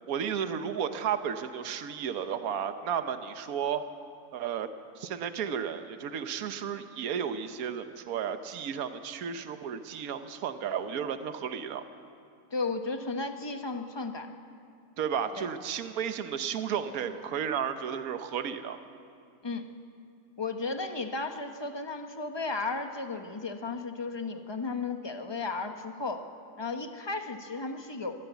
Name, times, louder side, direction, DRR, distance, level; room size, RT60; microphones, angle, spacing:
voice 1, 0.1-3.8 4.3-4.7 5.0-11.8 15.0-18.8, right 8 dB, 70° right, 9 dB, 1.4 m, -33 dB
voice 2, 12.5-14.3 15.4-15.5 19.4-19.7 20.4-26.2 26.6-28.1, left 3 dB, 20° left, 6 dB, 1.0 m, -34 dB
22.5 x 14.5 x 8.2 m, 2.4 s
omnidirectional pair, 1.6 m